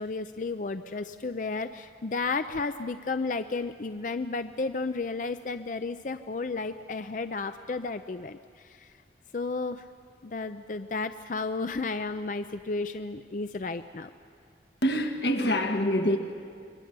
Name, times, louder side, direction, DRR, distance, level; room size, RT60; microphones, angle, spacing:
voice 1, 0.0-8.9 9.3-9.8 10.2-14.1, left 3 dB, 45° left, 10 dB, 0.5 m, -33 dB
voice 2, 14.8-16.2, equal, 70° left, 5 dB, 1.8 m, -25 dB
26.5 x 22.5 x 6.8 m, 2.2 s
head